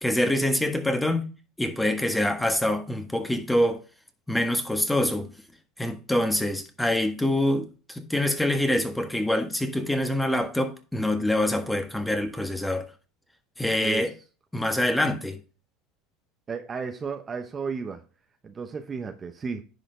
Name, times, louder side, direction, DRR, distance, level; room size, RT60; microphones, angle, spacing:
voice 1, 0.0-1.3 1.6-3.8 4.3-5.3 5.8-12.9 13.6-14.1 14.5-15.4, left 1 dB, 5° left, 1.5 m, -25 dB
voice 2, 13.8-14.1 16.5-18.0 18.4-19.6, right 5 dB, 30° right, 0.9 m, -33 dB
10.0 x 5.0 x 3.8 m
supercardioid pair, 95°, 0 cm